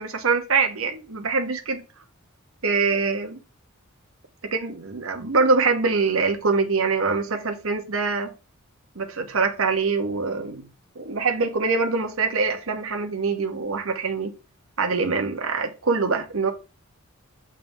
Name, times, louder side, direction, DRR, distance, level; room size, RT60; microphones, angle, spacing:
voice 1, 0.0-1.8 2.6-3.4 4.5-8.3 9.0-10.7 11.0-14.3 14.8-16.5, right 4 dB, 70° right, 1.0 m, -24 dB
7.5 x 3.4 x 5.4 m
head